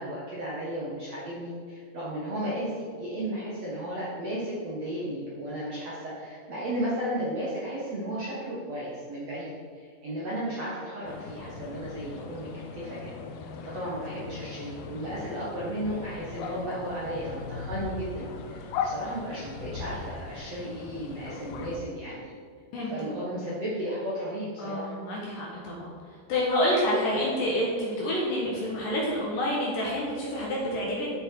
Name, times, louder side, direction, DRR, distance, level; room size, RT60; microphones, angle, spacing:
voice 1, 0.0-12.5 12.7-13.1 13.6-22.3 22.8-24.9, right 1 dB, 55° right, -8 dB, 2.0 m, -34 dB
sound 1, 11.1-21.8, left 5 dB, 80° left, 2.4 m, -38 dB
voice 2, 24.6-31.2, left 1 dB, 60° left, -4 dB, 2.6 m, -28 dB
13.0 x 6.6 x 4.8 m, 2.1 s
omnidirectional pair, 5.2 m